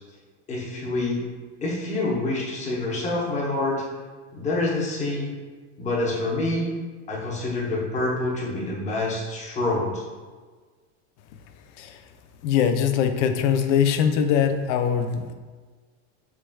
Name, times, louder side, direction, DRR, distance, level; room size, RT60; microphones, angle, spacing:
voice 1, 0.5-1.2 1.6-3.8 4.3-5.3 5.8-6.7 7.1-10.0, left 2 dB, 20° left, -5 dB, 0.9 m, -26 dB
voice 2, 12.4-15.3, left 8 dB, 75° left, 7 dB, 0.5 m, -22 dB
4.8 x 3.1 x 2.2 m, 1.4 s
supercardioid pair, 135°, 36 cm